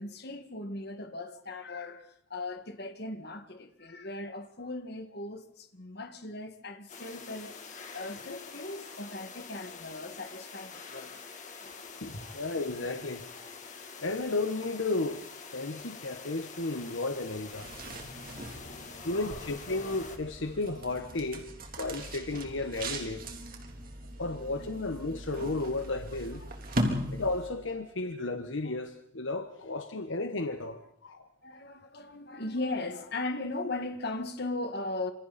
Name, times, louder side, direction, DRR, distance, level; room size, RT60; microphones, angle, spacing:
voice 1, 0.0-11.1 12.1-12.3 13.3-13.5 17.9-18.0 18.2-19.4 24.0-24.5 26.4-26.9 31.4-35.1, left 2 dB, 55° left, 2.1 m, -39 dB
sound 1, 6.9-20.2, left 5 dB, 40° left, 2.8 m, -46 dB
voice 2, 12.0-13.3 14.0-15.3 15.5-17.7 19.0-21.5 21.8-23.3 24.2-26.4 27.1-31.3, left 2 dB, 75° left, 1.3 m, -33 dB
sound 2, 17.4-27.7, right 1 dB, 45° right, 3.3 m, -38 dB
27.0 x 27.0 x 4.3 m
head